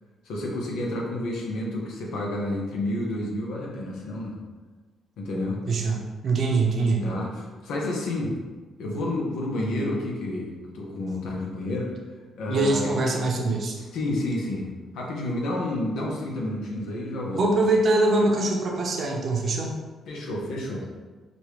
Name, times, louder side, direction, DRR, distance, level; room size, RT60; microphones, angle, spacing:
voice 1, 0.2-4.4 5.2-5.6 7.0-8.4 8.8-11.9 12.4-12.9 13.9-17.4 20.1-20.8, left 1 dB, 80° left, -2 dB, 1.0 m, -30 dB
voice 2, 5.7-6.0 6.2-7.1 12.5-13.7 17.3-19.7, right 2 dB, 55° right, 0 dB, 0.8 m, -23 dB
5.1 x 2.6 x 3.2 m, 1.3 s
cardioid pair, 90°, 0 cm